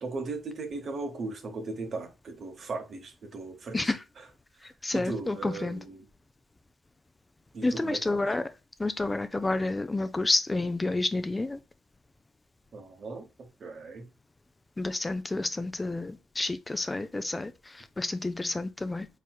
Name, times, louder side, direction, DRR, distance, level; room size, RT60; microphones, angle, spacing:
voice 1, 0.0-4.2 4.6-6.1 7.5-8.2 12.7-14.1, right 3 dB, 50° right, 1.0 m, -38 dB
voice 2, 4.6-5.8 7.6-8.4 8.8-11.6 14.8-19.1, left 2 dB, 20° left, 0.4 m, -30 dB
4.4 x 3.4 x 2.3 m
cardioid pair, 90°, 0 cm